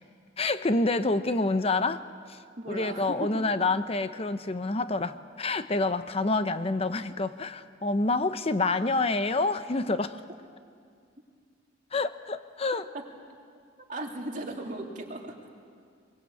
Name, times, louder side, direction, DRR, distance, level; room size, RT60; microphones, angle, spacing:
voice 1, 0.4-2.4 2.7-10.2 11.9-12.9, left 3 dB, 35° left, 11 dB, 0.7 m, -27 dB
voice 2, 2.6-3.4 13.9-15.4, right 1 dB, 45° right, 0 dB, 3.1 m, -36 dB
23.0 x 22.5 x 8.5 m, 2.2 s
head